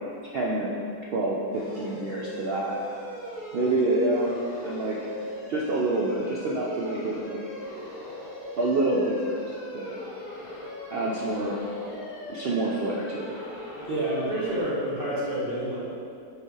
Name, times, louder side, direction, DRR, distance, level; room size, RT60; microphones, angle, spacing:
voice 1, 0.3-0.7 1.1-2.7 3.5-4.3 4.6-5.1 5.5-7.4 8.6-9.4 9.7-10.0 10.9-11.6 12.3-13.3, right 2 dB, 70° right, -4 dB, 0.5 m, -27 dB
sound 1, 1.5-14.6, left 1 dB, 75° left, 2.0 m, -39 dB
voice 2, 13.9-15.9, right 1 dB, 40° right, -9 dB, 1.1 m, -28 dB
4.8 x 4.3 x 4.7 m, 2.5 s
omnidirectional pair, 1.6 m